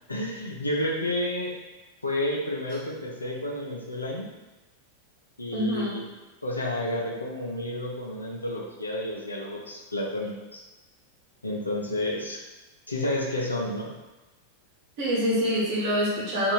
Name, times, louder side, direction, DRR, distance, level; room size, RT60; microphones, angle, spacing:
voice 1, 0.1-1.5 2.0-4.3 5.4-6.0 6.4-10.6 11.4-12.4 12.9-13.9, left 1 dB, 80° left, -2 dB, 0.6 m, -30 dB
voice 2, 5.5-5.9 15.0-16.5, equal, 45° right, -7 dB, 1.4 m, -25 dB
2.8 x 2.5 x 4.1 m, 1.1 s
figure-of-eight pair, 90°, 0 cm